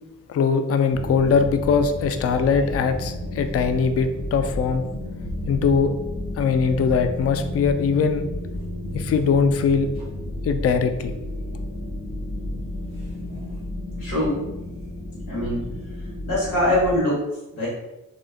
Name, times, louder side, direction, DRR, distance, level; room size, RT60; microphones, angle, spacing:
voice 1, 0.3-4.8 5.5-5.9 6.4-8.3 8.9-9.9 10.4-11.1, left 5 dB, 40° left, 8 dB, 0.4 m, -21 dB
sound 1, 0.9-17.0, left 1 dB, 65° left, 1.4 m, -32 dB
voice 2, 14.0-14.4 15.3-15.6 16.3-17.3 17.5-17.7, left 1 dB, 90° left, -7 dB, 1.5 m, -22 dB
3.2 x 2.7 x 2.4 m, 0.98 s
supercardioid pair, 40°, 38 cm